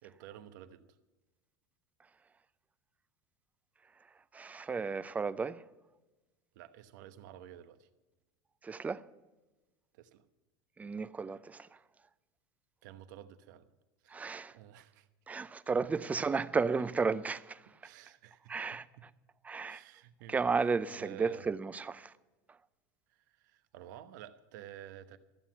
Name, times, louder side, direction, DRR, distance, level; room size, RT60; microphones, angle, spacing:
voice 1, 0.0-0.9 6.5-7.9 9.9-10.2 12.8-13.7 14.0-14.2 14.5-15.1 16.0-16.1 17.8-19.1 19.6-20.4 20.9-21.4 23.1-25.2, right 11 dB, 80° right, 1.0 m, -51 dB
voice 2, 4.3-5.6 8.6-9.1 10.8-11.7 14.1-14.6 15.3-17.6 18.5-18.8 19.4-19.8 20.3-22.1, right 4 dB, 15° right, 0.5 m, -33 dB
14.0 x 7.5 x 9.2 m
supercardioid pair, 125°, 10 cm